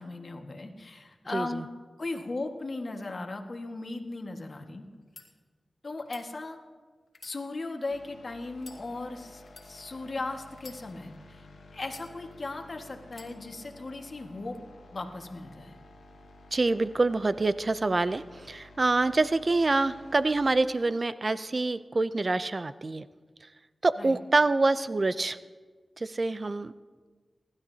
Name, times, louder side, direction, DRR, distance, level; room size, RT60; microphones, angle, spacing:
voice 1, 0.0-1.7 2.0-4.9 5.8-6.6 7.2-11.5 11.7-14.6 14.9-15.8 24.0-24.2, left 2 dB, 55° left, 4 dB, 1.6 m, -37 dB
voice 2, 1.3-1.6 16.5-23.1 23.8-25.4 26.0-26.7, right 3 dB, 50° right, 14 dB, 0.5 m, -26 dB
sound 1, 5.0-5.3 6.0-6.3 7.1-8.0 8.6-8.8 9.5-9.7 10.5-11.2 11.8-12.5 13.1-13.3, left 4 dB, 70° left, 1.8 m, -51 dB
sound 2, 7.9-20.4, left 2 dB, 90° left, 1.2 m, -52 dB
28.0 x 12.0 x 2.8 m, 1.5 s
cardioid pair, 40°, 0 cm